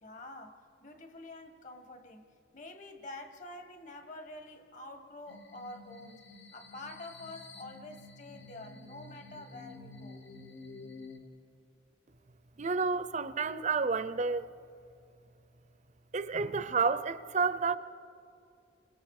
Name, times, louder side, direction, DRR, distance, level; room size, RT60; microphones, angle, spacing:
voice 1, 0.0-10.2, left 2 dB, 45° left, 1.6 m, -47 dB
sound 1, 5.3-11.2, left 2 dB, 75° left, 2.3 m, -50 dB
voice 2, 12.6-14.5 16.1-17.8, right 4 dB, 40° right, 0.6 m, -30 dB
29.5 x 25.5 x 4.9 m
head